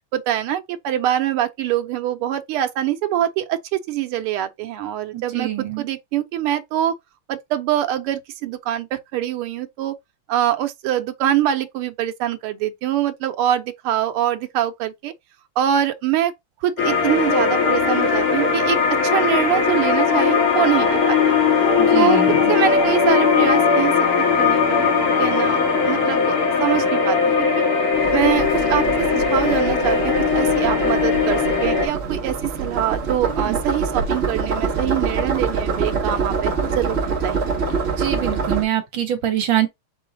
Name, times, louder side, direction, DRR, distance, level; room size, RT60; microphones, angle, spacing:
voice 1, 0.1-6.9 7.3-9.9 10.3-15.1 15.6-16.3 16.6-18.8 19.0-21.3 21.9-22.2 22.5-23.9 24.4-25.6 25.8-27.6 28.1-37.5, right 11 dB, 90° right, 1.5 m, -24 dB
voice 2, 5.1-5.8 21.8-22.5 33.3-33.6 38.0-39.7, right 11 dB, 65° right, 1.7 m, -24 dB
sound 1, 16.8-31.9, left 5 dB, 70° left, 2.4 m, -19 dB
sound 2, 27.9-38.6, right 5 dB, 45° right, 0.9 m, -25 dB
4.7 x 3.8 x 2.6 m
omnidirectional pair, 2.4 m